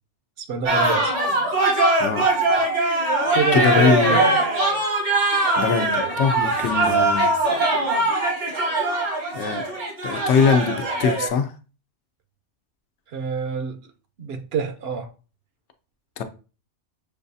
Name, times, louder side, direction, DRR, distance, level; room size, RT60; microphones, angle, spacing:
voice 1, 0.4-1.1 3.3-4.4 13.1-13.8 14.2-15.1, right 5 dB, 65° right, 0.8 m, -26 dB
sound 1, 0.7-11.3, right 2 dB, 80° right, 1.5 m, -21 dB
voice 2, 3.5-4.2 5.6-7.3 9.3-9.7 10.0-11.5 16.2-16.3, left 6 dB, 80° left, 0.9 m, -22 dB
6.5 x 2.3 x 2.6 m
omnidirectional pair, 1.2 m